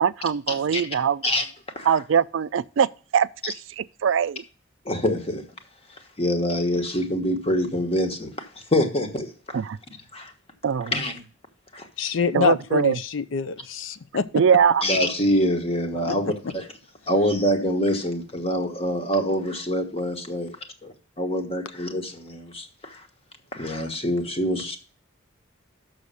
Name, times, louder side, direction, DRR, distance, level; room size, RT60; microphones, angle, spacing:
voice 1, 0.0-1.2 1.8-4.4 9.5-9.8 10.6-10.9 12.3-13.0 14.3-14.8, right 7 dB, 70° right, 0.4 m, -22 dB
voice 2, 4.8-5.5 6.2-9.6 10.1-10.3 10.9-11.1 11.7-11.9 14.8-16.7 17.1-20.6 20.8-23.1 23.5-24.8, equal, 30° left, 1.2 m, -25 dB
voice 3, 12.0-14.3 16.1-16.2, left 5 dB, 75° left, 0.5 m, -25 dB
6.4 x 6.3 x 6.8 m
head